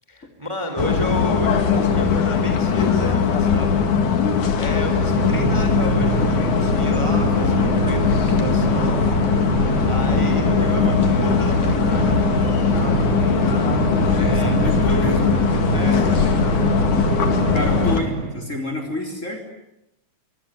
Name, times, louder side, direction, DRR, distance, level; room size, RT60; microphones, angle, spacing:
voice 1, 0.1-4.2 4.6-9.1 9.8-12.1 12.4-13.4 14.2-15.2 15.7-16.7, equal, 10° right, 6 dB, 3.3 m, -32 dB
sound 1, 0.8-18.0, left 6 dB, 90° left, 3.7 m, -20 dB
voice 2, 2.1-2.5 10.3-11.0 14.3-15.3 17.5-19.4, left 2 dB, 25° left, 6 dB, 4.0 m, -30 dB
sound 2, 4.6-18.5, right 4 dB, 30° right, 1.8 m, -25 dB
24.5 x 24.5 x 9.8 m, 0.83 s
omnidirectional pair, 3.4 m